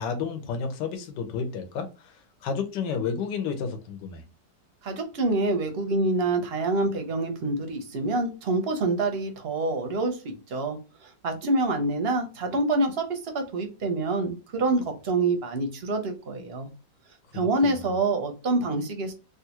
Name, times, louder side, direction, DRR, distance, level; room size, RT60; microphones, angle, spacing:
voice 1, 0.0-2.1 2.4-4.2 17.3-17.8, left 6 dB, 85° left, 1.4 m, -31 dB
voice 2, 4.8-16.7 17.3-19.1, right 2 dB, 60° right, 0.6 m, -26 dB
3.4 x 2.4 x 2.8 m
omnidirectional pair, 1.9 m